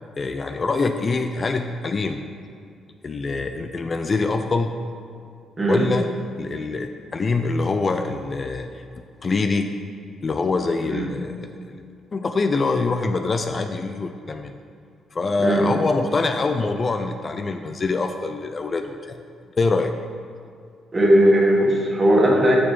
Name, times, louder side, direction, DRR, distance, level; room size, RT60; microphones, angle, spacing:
voice 1, 0.2-2.2 3.0-4.7 5.7-6.1 6.4-8.8 9.2-9.7 10.2-11.8 12.1-14.5 15.1-19.2 19.6-19.9, left 3 dB, 35° left, 6 dB, 0.4 m, -24 dB
voice 2, 20.9-22.6, equal, 25° right, -1 dB, 1.6 m, -17 dB
8.3 x 6.1 x 4.5 m, 2.3 s
cardioid pair, 90°, 0 cm